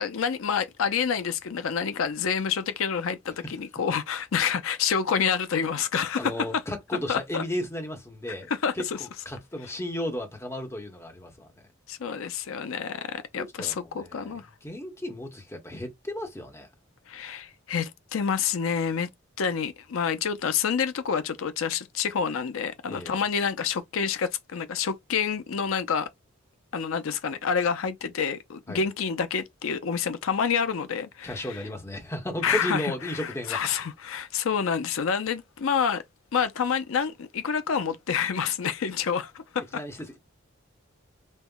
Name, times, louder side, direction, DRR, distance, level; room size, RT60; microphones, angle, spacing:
voice 1, 0.0-6.5 7.1-7.4 8.6-9.0 11.9-14.5 17.1-19.1 19.4-26.1 26.7-31.6 32.4-36.0 36.3-39.6, left 6 dB, 80° left, 0.5 m, -28 dB
voice 2, 6.2-8.5 8.7-8.8 9.2-11.7 13.4-14.3 14.6-16.7 22.9-23.2 28.7-28.8 31.2-33.8 39.7-40.2, left 1 dB, 15° left, 0.9 m, -34 dB
5.2 x 2.1 x 2.2 m
head